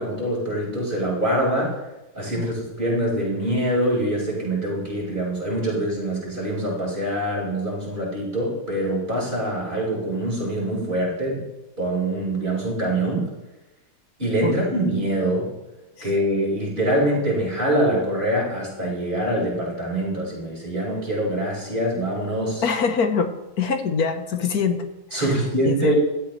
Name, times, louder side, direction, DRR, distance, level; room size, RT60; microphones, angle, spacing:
voice 1, 0.0-1.7 2.1-11.4 11.8-13.3 14.2-15.5 16.0-22.6 25.1-25.9, right 1 dB, 30° right, -5 dB, 5.6 m, -24 dB
voice 2, 22.6-23.3 23.6-25.3 25.6-25.9, left 5 dB, 70° left, 7 dB, 1.6 m, -24 dB
16.5 x 13.0 x 3.3 m, 1.0 s
omnidirectional pair, 1.7 m